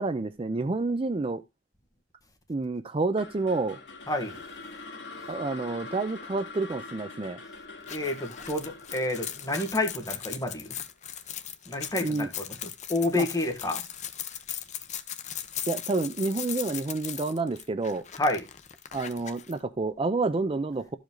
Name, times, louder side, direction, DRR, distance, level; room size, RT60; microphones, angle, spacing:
voice 1, 0.0-1.4 2.5-3.8 5.3-7.4 12.0-12.3 13.1-13.3 15.7-18.0 18.9-21.0, right 3 dB, 30° right, 0.5 m, -29 dB
sound 1, 3.2-11.4, left 3 dB, 75° left, 2.3 m, -44 dB
voice 2, 4.1-4.4 7.9-10.8 11.7-12.6 12.9-13.8 18.2-18.4, left 2 dB, 20° left, 1.8 m, -29 dB
sound 2, 7.8-19.5, left 10 dB, 40° left, 0.8 m, -38 dB
13.0 x 5.1 x 3.8 m
head